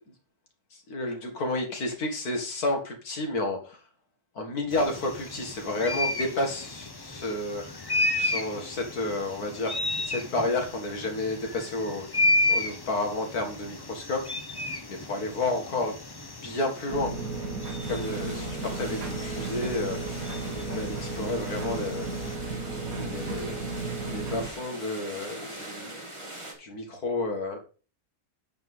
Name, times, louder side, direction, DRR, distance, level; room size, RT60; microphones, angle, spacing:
voice 1, 0.9-3.8 4.4-7.6 8.2-9.8 10.1-12.1 12.5-14.3 14.9-15.9 16.4-17.1 17.7-20.0 20.3-22.1 22.4-22.6 23.0-23.6 24.1-26.1 26.6-27.6, left 2 dB, 70° left, 3 dB, 2.3 m, -31 dB
sound 1, 4.7-22.4, left 2 dB, 25° left, 0.5 m, -33 dB
sound 2, 16.9-24.5, right 3 dB, 65° right, 1.9 m, -34 dB
sound 3, 17.8-26.5, right 1 dB, 20° right, 2.2 m, -42 dB
9.0 x 4.4 x 5.5 m, 0.36 s
omnidirectional pair, 1.7 m